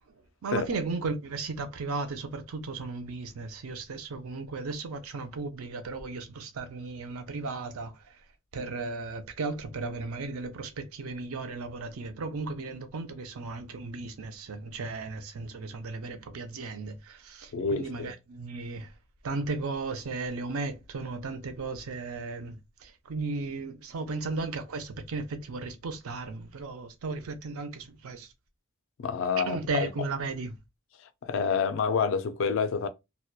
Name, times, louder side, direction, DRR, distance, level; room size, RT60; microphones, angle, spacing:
voice 1, 0.4-8.2 8.5-18.9 19.2-28.3 29.5-30.6, right 3 dB, 80° right, 0.5 m, -35 dB
voice 2, 17.5-18.1 29.0-29.9 31.0-32.9, left 5 dB, 60° left, 0.3 m, -28 dB
2.6 x 2.1 x 2.2 m
head